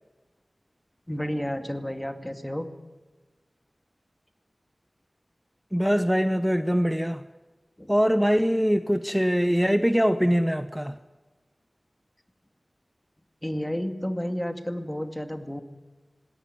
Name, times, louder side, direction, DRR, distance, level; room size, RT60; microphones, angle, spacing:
voice 1, 1.1-2.7 7.8-7.9 13.4-15.6, equal, 15° left, 2.2 m, -31 dB
voice 2, 5.7-7.2 7.9-11.0, equal, 5° right, 0.9 m, -23 dB
19.5 x 17.5 x 9.9 m
wide cardioid pair, 60°, 0 cm